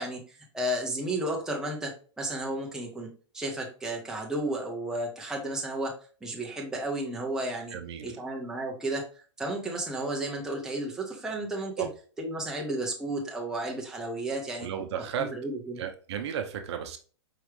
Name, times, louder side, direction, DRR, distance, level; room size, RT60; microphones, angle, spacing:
voice 1, 0.0-5.9 6.2-7.8 8.0-9.0 9.4-11.9 12.2-14.7 15.2-15.8, right 1 dB, 5° right, -2 dB, 1.0 m, -33 dB
voice 2, 7.7-8.0 11.8-11.9 14.6-15.3 15.8-17.0, right 8 dB, 65° right, 5 dB, 0.8 m, -33 dB
4.9 x 3.1 x 3.1 m, 0.39 s
hypercardioid pair, 145°, 16 cm